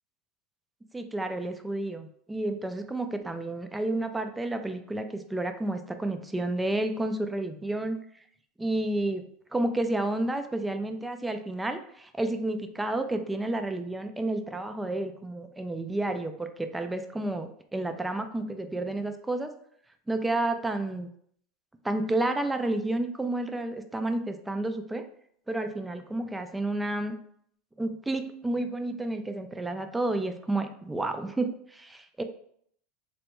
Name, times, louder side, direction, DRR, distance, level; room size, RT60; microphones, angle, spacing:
voice 1, 0.9-8.0 8.6-9.2 9.5-19.5 20.1-21.1 21.8-25.0 25.5-27.2 27.8-32.2, right 2 dB, 10° right, 7 dB, 0.3 m, -30 dB
3.3 x 2.2 x 2.9 m, 0.65 s
supercardioid pair, 120°, 0 cm